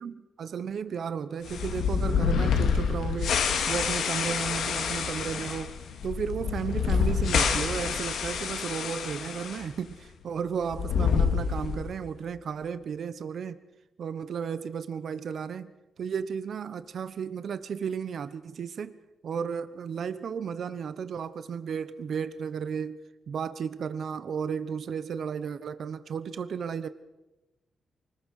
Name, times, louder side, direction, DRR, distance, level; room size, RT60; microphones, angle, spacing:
voice 1, 0.0-5.8 6.0-13.6 14.0-15.7 16.0-18.9 19.2-23.0 23.3-26.9, right 7 dB, 60° right, 13 dB, 1.0 m, -34 dB
sound 1, 1.4-9.6 9.9-10.0 10.6-12.0, left 6 dB, 80° left, 2.5 m, -27 dB
24.5 x 19.5 x 6.5 m, 1.0 s
cardioid pair, 125°, 0 cm